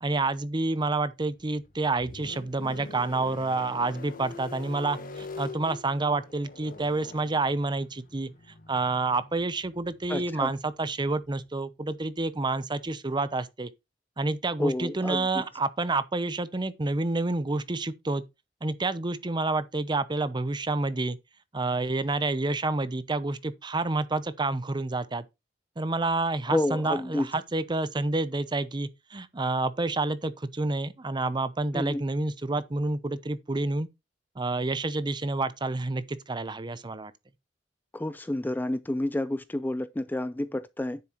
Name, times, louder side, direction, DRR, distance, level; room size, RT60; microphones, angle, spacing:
voice 1, 0.0-8.3 8.7-13.7 14.2-18.2 18.6-21.2 21.5-25.2 25.8-33.9 34.4-37.1, right 3 dB, 25° right, 0.7 m, -29 dB
sound 1, 1.2-11.5, left 3 dB, 50° left, 1.1 m, -45 dB
voice 2, 10.1-10.5 14.6-15.3 26.5-27.3 31.7-32.0 37.9-41.0, left 1 dB, 10° left, 0.4 m, -29 dB
9.7 x 7.5 x 3.0 m
head